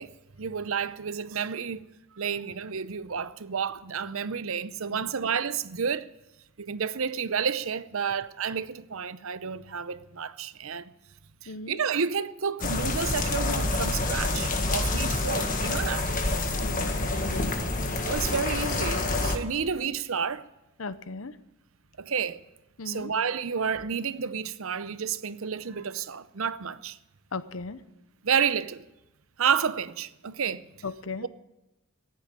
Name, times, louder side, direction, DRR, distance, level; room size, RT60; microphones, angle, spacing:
voice 1, 0.0-1.8 2.1-6.1 6.6-10.9 11.4-16.1 18.0-20.4 22.0-22.4 22.8-27.0 28.2-28.8 29.4-30.7 31.2-31.3, right 6 dB, 70° right, 0.7 m, -30 dB
voice 2, 11.5-11.8 16.6-17.5 20.8-21.4 22.8-23.1 27.3-27.8 30.8-31.3, left 3 dB, 70° left, 0.8 m, -37 dB
sound 1, 12.6-19.4, left 2 dB, 40° left, 1.6 m, -27 dB
15.5 x 10.5 x 8.9 m
head